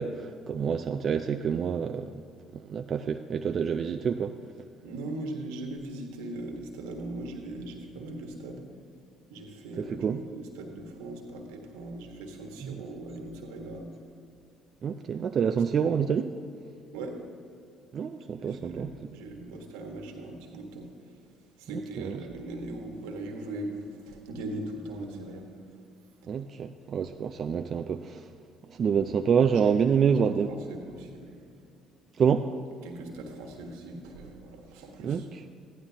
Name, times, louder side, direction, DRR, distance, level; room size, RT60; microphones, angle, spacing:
voice 1, 0.0-2.2 2.5-4.4 9.8-10.2 12.6-12.8 14.8-16.3 17.9-18.9 21.7-22.2 26.3-28.3 28.7-30.5 32.1-32.5 35.0-35.4, right 7 dB, 50° right, 6 dB, 0.4 m, -27 dB
voice 2, 4.8-8.6 9.3-13.9 16.9-17.2 18.4-20.9 21.6-25.5 28.8-29.0 29.5-29.6 30.5-31.4 32.8-35.2, right 2 dB, 85° right, 2 dB, 1.6 m, -39 dB
15.0 x 11.0 x 2.9 m, 2.5 s
supercardioid pair, 65°, 0 cm